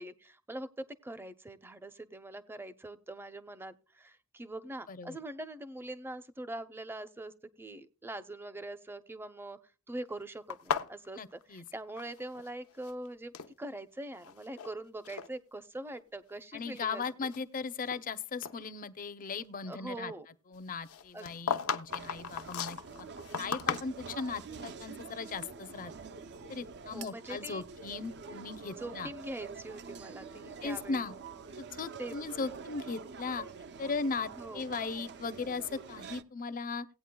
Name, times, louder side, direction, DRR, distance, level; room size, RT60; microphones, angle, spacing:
voice 1, 0.0-7.3 7.6-9.6 9.9-17.3 19.7-20.3 21.1-21.4 26.9-27.6 28.7-31.1 32.0-32.2 34.3-34.7, right 1 dB, 10° right, 0.6 m, -43 dB
sound 1, 10.5-12.5 12.7-13.5 14.2-14.7 15.0-15.3 15.9-16.0 16.6-18.1 18.4-18.6 20.8-24.3, left 6 dB, 85° left, 0.7 m, -36 dB
voice 2, 11.1-11.6 16.5-20.1 20.5-23.1 23.3-25.9 26.5-29.1 30.6-31.2 31.6-33.5 33.8-36.9, left 4 dB, 40° left, 0.6 m, -38 dB
sound 2, 21.9-36.2, right 5 dB, 55° right, 0.6 m, -47 dB
17.5 x 9.0 x 2.2 m
head